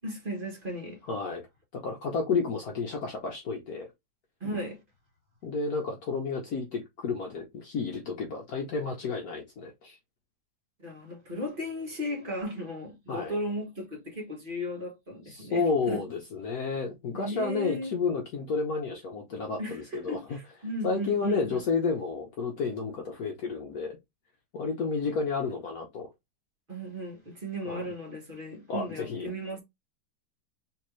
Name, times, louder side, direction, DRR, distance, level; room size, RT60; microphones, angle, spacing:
voice 1, 0.0-1.0 4.4-4.8 10.8-16.1 17.1-17.9 19.6-21.6 26.7-29.6, equal, 30° right, 1.4 m, -36 dB
voice 2, 1.1-1.5 1.7-3.9 5.4-10.0 13.1-13.4 15.3-20.4 20.8-24.0 24.5-26.1 27.6-27.9 28.7-29.3, left 4 dB, 65° left, 1.2 m, -31 dB
3.4 x 3.4 x 3.0 m
omnidirectional pair, 1.9 m